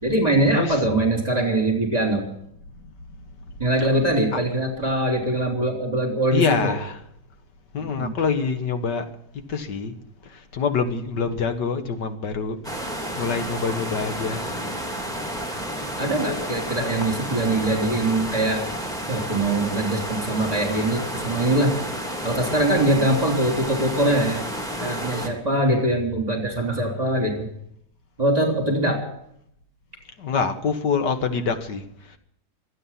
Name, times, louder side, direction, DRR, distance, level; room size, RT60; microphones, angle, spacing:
voice 1, 0.0-2.3 3.6-6.7 8.0-8.1 16.0-18.6 19.1-21.8 22.2-24.4 24.8-27.5 28.2-29.0, right 1 dB, 20° right, 3.6 m, -22 dB
voice 2, 6.3-7.0 7.7-9.1 9.5-10.0 10.2-14.6 16.8-16.9 25.5-25.8 30.2-32.2, left 5 dB, 70° left, 2.2 m, -26 dB
sound 1, 12.6-25.3, equal, ahead, 2.8 m, -31 dB
25.0 x 9.1 x 5.8 m
omnidirectional pair, 1.9 m